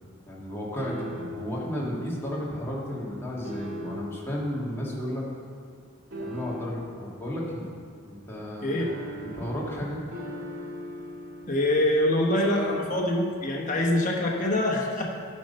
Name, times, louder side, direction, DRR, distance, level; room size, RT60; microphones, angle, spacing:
voice 1, 0.3-5.2 6.2-7.7 8.1-10.0, left 1 dB, 10° left, -6 dB, 1.7 m, -33 dB
sound 1, 0.8-1.6 3.4-4.2 6.1-6.9 8.8-11.5, equal, 65° right, 2.1 m, -38 dB
voice 2, 11.5-15.0, left 1 dB, 35° left, -1 dB, 1.2 m, -24 dB
10.5 x 5.5 x 5.4 m, 2.4 s
head